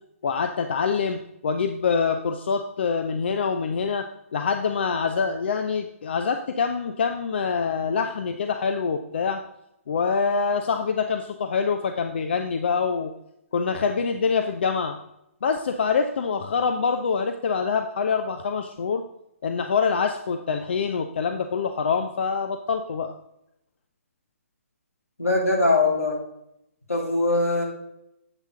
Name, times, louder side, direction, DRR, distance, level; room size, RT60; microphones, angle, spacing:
voice 1, 0.2-4.1 4.3-9.4 9.9-13.1 13.5-15.0 15.4-19.0 19.4-23.1, left 5 dB, 50° left, 6 dB, 0.6 m, -25 dB
voice 2, 25.2-26.2 26.9-27.6, left 2 dB, 80° left, -2 dB, 3.1 m, -21 dB
8.1 x 8.0 x 3.8 m, 0.82 s
figure-of-eight pair, 135°, 8 cm